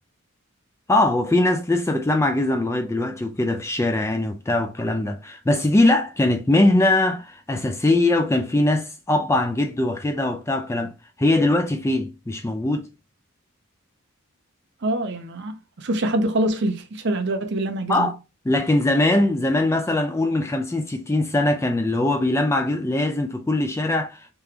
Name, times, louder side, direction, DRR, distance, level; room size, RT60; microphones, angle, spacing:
voice 1, 0.9-10.9 11.2-12.9 17.9-18.2 18.5-24.2, left 2 dB, 15° left, 0.3 m, -21 dB
voice 2, 14.8-18.1, right 1 dB, 50° right, 0.6 m, -25 dB
3.5 x 2.8 x 3.3 m
head